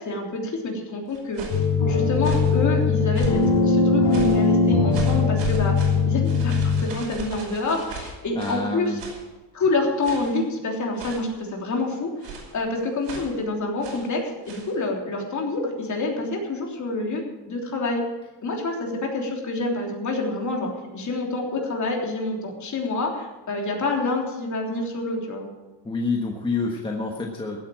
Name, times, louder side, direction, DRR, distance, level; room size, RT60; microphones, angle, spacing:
voice 1, 0.0-1.5 1.9-5.8 6.1-9.0 9.5-17.2 17.5-18.0 18.4-25.5, left 2 dB, 35° left, 0 dB, 3.4 m, -27 dB
sound 1, 1.1-1.7 2.2-2.6 3.1-3.5 4.1-4.5 4.9-8.7 9.0-9.3 10.0-10.4 11.0-11.4 12.2-12.6 13.0-13.4 13.8-14.1 14.4-14.7, right 4 dB, 80° right, 5.4 m, -36 dB
sound 2, 1.5-6.8, left 4 dB, 55° left, 4.1 m, -20 dB
voice 2, 8.3-9.0 25.8-27.6, left 3 dB, 10° left, 0 dB, 1.3 m, -27 dB
15.5 x 8.7 x 7.5 m, 1.1 s
cardioid pair, 145°, 47 cm